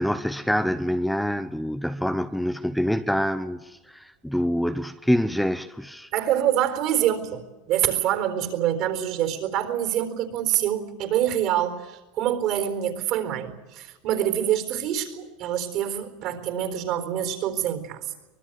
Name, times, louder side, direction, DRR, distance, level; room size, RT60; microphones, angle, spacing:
voice 1, 0.0-6.1, equal, ahead, 0.8 m, -26 dB
voice 2, 6.1-18.1, right 11 dB, 55° right, 4.1 m, -26 dB
24.5 x 20.0 x 8.2 m
supercardioid pair, 125°, 0 cm